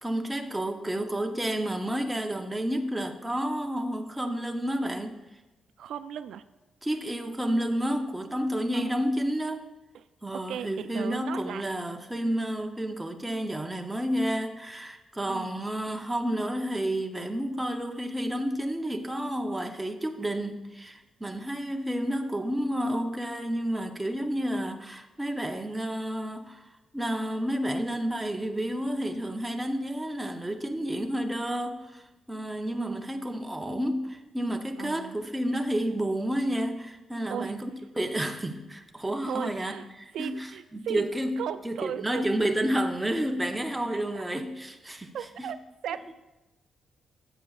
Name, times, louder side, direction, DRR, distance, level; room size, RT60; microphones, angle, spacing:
voice 1, 0.0-5.2 6.8-9.7 10.2-37.7 37.9-40.5 40.7-41.4 41.6-45.1 45.4-45.5, right 1 dB, 5° right, 4 dB, 0.6 m, -30 dB
voice 2, 5.8-6.4 8.7-8.9 9.9-10.1 10.3-11.6 15.3-15.6 32.7-33.1 34.8-35.2 37.3-37.6 39.2-39.9 40.1-41.1 41.4-42.2 44.1-44.3 45.1-45.6 45.8-46.1, right 9 dB, 80° right, 12 dB, 0.3 m, -36 dB
13.5 x 7.6 x 2.4 m, 1.1 s
wide cardioid pair, 155°, 0 cm